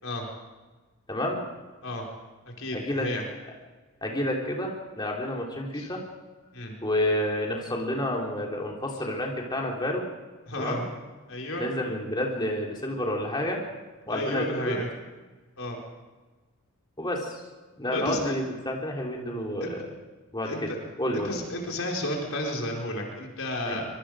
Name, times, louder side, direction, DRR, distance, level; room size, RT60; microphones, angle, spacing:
voice 1, 1.1-1.4 2.7-3.1 4.0-6.0 6.8-10.0 10.6-10.8 11.6-13.6 14.1-14.8 17.0-17.4 17.8-19.8 20.3-20.7 21.0-21.3 23.7-23.8, left 1 dB, 20° left, -1 dB, 3.6 m, -29 dB
voice 2, 2.6-3.2 5.7-5.9 6.5-6.7 10.4-10.8 11.3-11.6 14.1-14.9 15.6-15.8 17.9-18.3 19.6-19.7 20.4-20.8 21.1-23.9, left 1 dB, 65° left, 0 dB, 4.9 m, -32 dB
25.5 x 23.0 x 5.0 m, 1.3 s
head